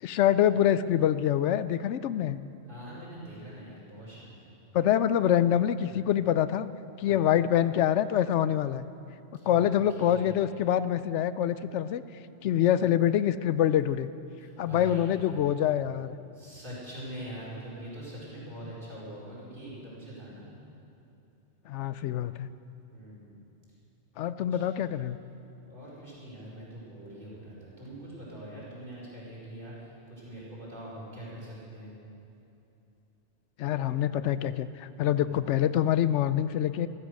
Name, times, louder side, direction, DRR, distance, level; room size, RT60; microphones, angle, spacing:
voice 1, 0.0-2.4 4.7-6.7 7.0-8.9 9.5-12.0 12.4-14.1 14.6-16.2 21.7-22.5 24.2-25.2 33.6-36.9, left 10 dB, 80° left, 14 dB, 0.9 m, -25 dB
voice 2, 2.7-4.5 5.9-6.0 7.0-7.2 9.4-9.7 10.0-10.4 14.4-15.4 16.3-20.5 22.9-23.4 24.5-24.6 25.7-29.7 30.1-31.9 35.2-35.3, right 1 dB, 45° right, -7 dB, 4.7 m, -43 dB
14.5 x 14.5 x 6.4 m, 2.9 s
omnidirectional pair, 1.2 m